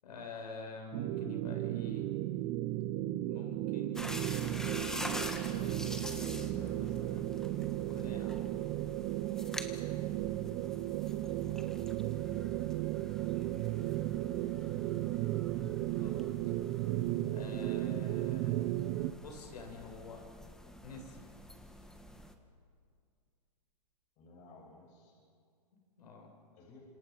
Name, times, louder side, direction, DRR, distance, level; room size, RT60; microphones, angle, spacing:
voice 1, 0.0-2.1 3.3-7.4 7.9-8.4 15.8-16.5 17.3-18.7 19.1-20.3 20.8-21.3 26.0-26.3, left 3 dB, 75° left, 1 dB, 7.7 m, -48 dB
sound 1, 0.9-19.1, right 15 dB, 30° right, 0.7 m, -35 dB
sound 2, 4.0-22.3, left 1 dB, 5° left, 1.5 m, -46 dB
voice 2, 11.4-11.8 14.4-14.8 24.2-25.1 26.5-26.8, left 3 dB, 35° left, -1 dB, 7.5 m, -57 dB
30.0 x 27.0 x 5.7 m, 2.2 s
hypercardioid pair, 135°, 21 cm